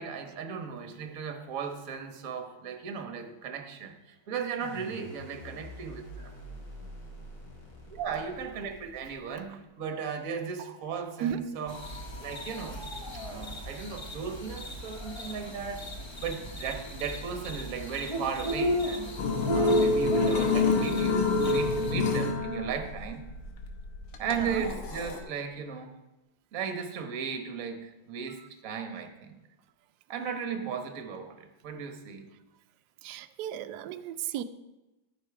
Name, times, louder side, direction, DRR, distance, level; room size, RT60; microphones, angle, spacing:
voice 1, 0.0-6.3 7.9-11.7 12.1-15.8 16.2-19.1 19.5-23.3 24.2-25.9 26.5-29.4 30.1-32.3, right 6 dB, 50° right, 5 dB, 1.3 m, -36 dB
sound 1, 4.6-9.6, equal, 60° left, 3.4 m, -46 dB
voice 2, 11.2-11.7 13.3-13.5 24.4-24.6 33.0-34.4, right 9 dB, 75° right, 11 dB, 0.9 m, -35 dB
sound 2, 11.7-21.9, right 1 dB, 45° left, 0.3 m, -35 dB
sound 3, 19.2-25.2, left 3 dB, 85° left, 1.8 m, -27 dB
13.0 x 5.9 x 4.8 m, 1.0 s
omnidirectional pair, 2.2 m